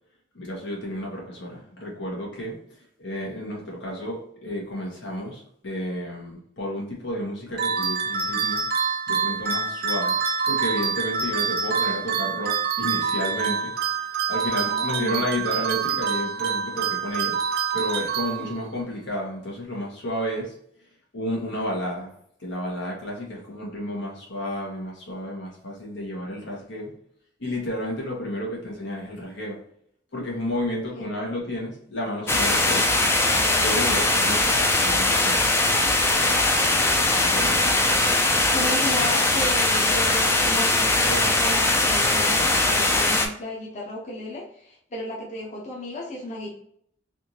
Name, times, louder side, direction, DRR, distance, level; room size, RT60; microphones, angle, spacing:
voice 1, 0.3-2.6 3.0-8.6 9.1-13.7 14.3-17.3 17.7-20.5 21.1-22.1 22.4-26.9 27.4-29.6 30.1-32.9 33.6-35.4 37.2-37.5, equal, 85° left, -3 dB, 1.4 m, -31 dB
sound 1, 7.6-18.8, right 6 dB, 55° right, 0.6 m, -26 dB
voice 2, 14.5-15.2 18.4-18.5 30.9-31.0 37.4-37.5 38.1-38.2 38.5-46.5, left 1 dB, 40° left, -4 dB, 0.8 m, -34 dB
sound 2, 32.3-43.3, left 2 dB, 15° left, 0.4 m, -21 dB
3.4 x 2.6 x 2.9 m, 0.68 s
head